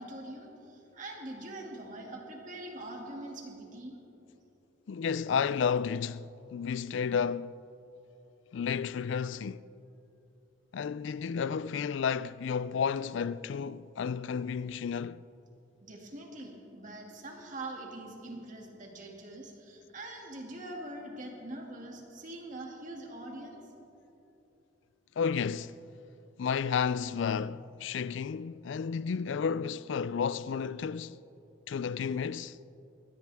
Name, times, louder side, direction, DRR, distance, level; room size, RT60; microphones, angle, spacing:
voice 1, 0.0-4.0 15.8-23.6, right 1 dB, 40° right, 2.4 m, -43 dB
voice 2, 4.9-7.6 8.5-9.6 10.7-15.2 25.2-25.7 26.4-31.2 31.7-32.6, left 6 dB, 65° left, 0.4 m, -32 dB
22.5 x 18.0 x 3.5 m
head